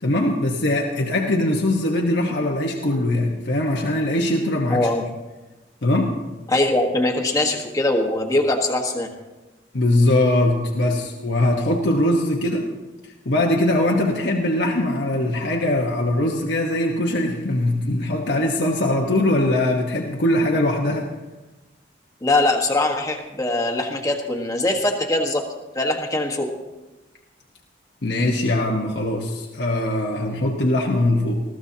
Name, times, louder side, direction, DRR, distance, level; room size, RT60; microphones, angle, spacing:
voice 1, 0.0-4.9 5.8-6.1 9.7-12.7 13.2-21.1 28.0-31.4, left 1 dB, 70° left, -1 dB, 1.2 m, -21 dB
voice 2, 4.7-5.0 6.5-9.1 22.2-25.4 25.7-26.5, left 2 dB, 20° left, 2 dB, 1.4 m, -22 dB
20.5 x 14.5 x 2.8 m, 1.1 s
head